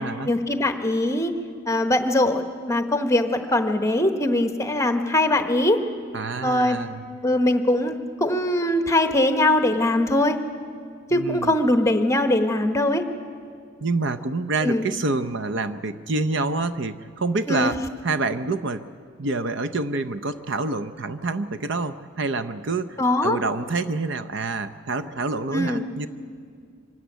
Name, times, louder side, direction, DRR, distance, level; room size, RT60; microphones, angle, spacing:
voice 1, 0.2-1.3 1.7-5.8 6.4-6.8 7.2-10.4 11.1-13.0 14.6-14.9 17.5-17.7 23.0-23.4 25.5-25.8, left 1 dB, 15° left, 7 dB, 0.9 m, -21 dB
voice 2, 6.1-7.0 11.1-11.5 13.8-17.8 18.0-18.8 19.2-26.1, right 3 dB, 60° right, 11 dB, 0.7 m, -27 dB
24.5 x 13.5 x 9.2 m, 2.2 s
head